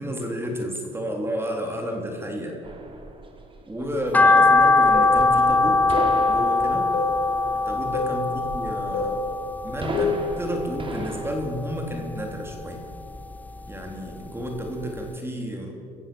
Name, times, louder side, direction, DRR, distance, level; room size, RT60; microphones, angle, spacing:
voice 1, 0.0-2.6 3.7-5.8 6.3-6.9 7.7-9.2 9.6-12.8 13.7-15.7, equal, 15° right, 1 dB, 3.7 m, -31 dB
sound 1, 2.6-11.3, right 2 dB, 30° right, 3.3 m, -37 dB
sound 2, 4.1-10.4 10.8-12.0 12.3-13.7 14.1-14.2 14.7-14.8 15.0-15.1, left 3 dB, 10° left, 0.7 m, -21 dB
sound 3, 4.9-5.2 5.9-6.2 6.9-7.2 7.9-8.2 8.9-9.2 9.9-10.3, left 5 dB, 70° left, 4.9 m, -27 dB
26.5 x 15.0 x 7.1 m, 2.5 s
cardioid pair, 110°, 17 cm